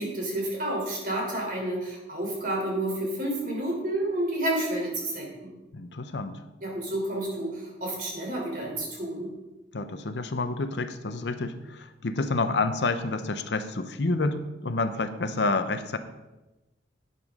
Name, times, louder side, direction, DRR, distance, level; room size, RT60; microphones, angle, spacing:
voice 1, 0.0-5.5 6.6-9.3, right 1 dB, 50° right, -1 dB, 3.3 m, -30 dB
voice 2, 5.7-6.4 9.7-16.0, left 3 dB, 70° left, 10 dB, 0.7 m, -29 dB
11.5 x 9.1 x 3.6 m, 1.0 s
head